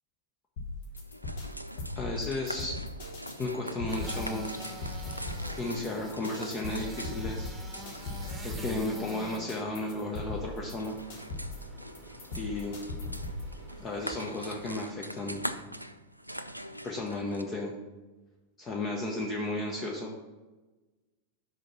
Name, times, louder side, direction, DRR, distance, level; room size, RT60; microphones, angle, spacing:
sound 1, 0.6-13.5, left 2 dB, 55° left, 1.5 m, -39 dB
sound 2, 0.9-17.4, equal, 90° right, 0.3 m, -43 dB
voice 1, 2.0-2.8 3.4-4.5 5.6-7.5 8.4-11.0 12.3-12.8 13.8-15.4 16.8-17.7 18.6-20.2, left 2 dB, 25° left, 0 dB, 0.8 m, -34 dB
sound 3, 3.9-14.8, equal, 10° right, 1.2 m, -47 dB
5.5 x 5.1 x 5.9 m, 1.2 s
figure-of-eight pair, 90°, 0 cm